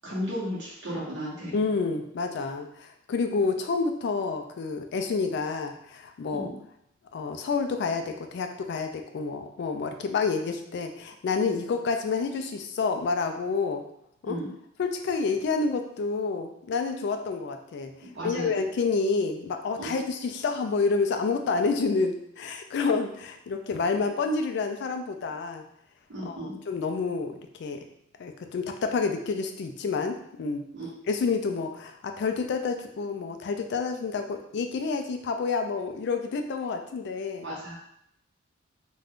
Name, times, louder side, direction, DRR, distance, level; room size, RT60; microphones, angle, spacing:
voice 1, 0.0-1.6 6.3-6.6 14.3-14.5 18.0-18.5 19.8-19.9 26.1-26.6 30.7-30.9 37.4-37.8, equal, 60° right, -7 dB, 1.0 m, -34 dB
voice 2, 1.5-6.5 7.1-13.8 14.2-14.4 14.8-25.6 26.2-27.9 28.2-30.6 31.1-37.5, left 4 dB, 55° left, 5 dB, 0.3 m, -29 dB
2.4 x 2.2 x 3.5 m, 0.74 s
head